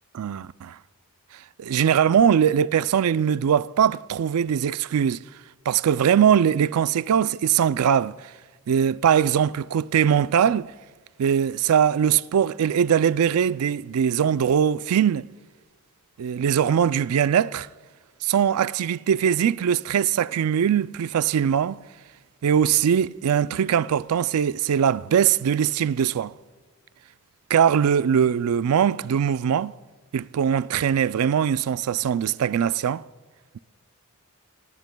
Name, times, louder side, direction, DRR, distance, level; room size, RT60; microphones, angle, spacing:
voice 1, 0.1-0.8 1.6-5.2 5.7-8.2 8.7-10.7 11.2-15.3 16.2-17.7 18.2-21.8 22.4-26.3 27.5-29.7 30.1-33.0, right 8 dB, 75° right, 0.4 m, -21 dB
26.5 x 19.5 x 2.2 m
head